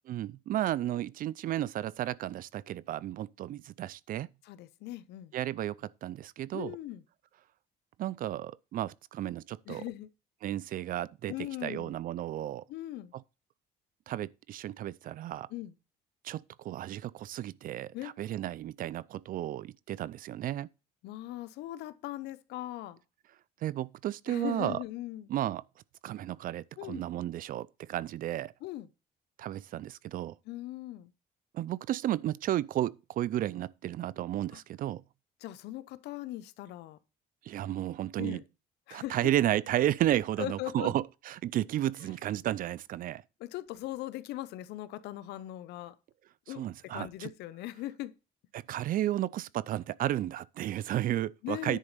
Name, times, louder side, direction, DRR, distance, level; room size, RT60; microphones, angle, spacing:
voice 1, 0.1-4.3 5.3-6.8 8.0-9.8 10.4-11.3 11.6-12.6 14.1-15.5 16.2-20.7 23.6-24.8 25.3-25.6 26.0-28.5 29.4-30.4 31.5-35.0 37.5-38.4 38.9-43.2 46.6-47.3 48.5-51.8, right 13 dB, 55° right, 0.4 m, -33 dB
voice 2, 4.4-5.3 6.5-7.0 9.7-10.1 11.3-12.0 12.7-13.1 15.5-15.8 17.9-18.1 21.0-23.0 24.3-25.3 26.8-27.0 28.6-28.9 30.5-31.1 34.5-34.6 35.4-37.0 38.2-38.4 38.9-39.1 40.4-40.9 43.4-45.9 46.5-46.6 46.9-48.1 51.4-51.8, left 15 dB, 80° left, 0.7 m, -39 dB
10.0 x 4.0 x 6.7 m
cardioid pair, 110°, 17 cm